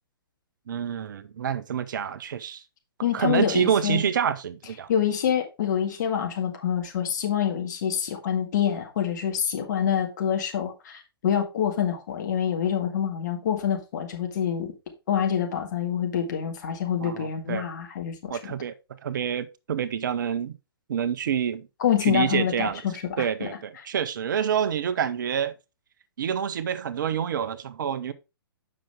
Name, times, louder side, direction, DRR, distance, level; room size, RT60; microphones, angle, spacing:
voice 1, 0.7-2.6 3.1-4.9 17.0-17.7 18.3-18.7 19.0-20.5 20.9-21.7 22.0-22.8 23.2-25.5 26.2-28.1, right 8 dB, 50° right, 0.6 m, -27 dB
voice 2, 3.0-4.0 4.9-14.7 15.1-18.5 21.8-23.5, left 9 dB, 45° left, 1.9 m, -26 dB
7.5 x 5.9 x 3.5 m
figure-of-eight pair, 120°, 13 cm